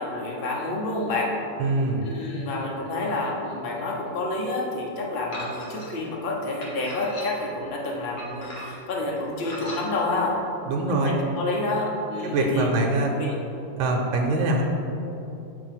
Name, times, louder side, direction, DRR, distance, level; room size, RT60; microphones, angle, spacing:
voice 1, 0.0-1.4 2.0-10.4 10.9-12.7 13.1-13.4, left 2 dB, 75° left, -2 dB, 0.5 m, -29 dB
voice 2, 1.6-2.1 10.6-11.1 12.2-13.1 13.8-14.6, right 2 dB, 80° right, 0 dB, 1.4 m, -23 dB
sound 1, 5.3-5.9 6.6-7.5 8.2-8.9 9.4-9.8, left 1 dB, 55° left, 1.7 m, -38 dB
6.8 x 2.9 x 5.7 m, 2.9 s
omnidirectional pair, 2.2 m